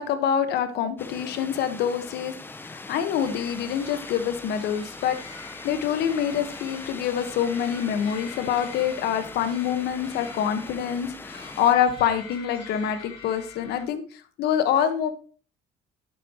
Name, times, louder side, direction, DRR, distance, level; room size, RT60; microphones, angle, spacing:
voice 1, 0.0-2.3 2.6-5.2 5.6-15.1, left 9 dB, 75° left, 9 dB, 1.3 m, -26 dB
sound 1, 1.0-11.8, left 2 dB, 10° left, 0.7 m, -41 dB
sound 2, 3.2-13.8, left 5 dB, 35° left, 3.5 m, -45 dB
11.5 x 8.9 x 3.0 m, 0.39 s
cardioid pair, 110°, 17 cm